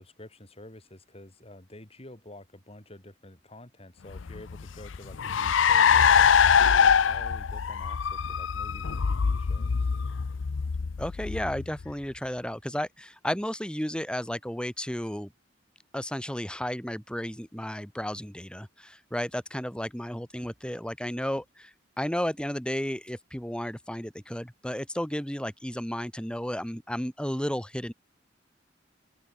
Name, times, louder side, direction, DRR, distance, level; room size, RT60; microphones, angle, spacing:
voice 1, 0.0-9.9, left 1 dB, 30° left, 4.1 m, -49 dB
Car, 4.1-11.9, left 7 dB, 85° left, 0.6 m, -23 dB
voice 2, 11.0-15.3 15.9-27.9, equal, 5° left, 2.1 m, -33 dB
open air
head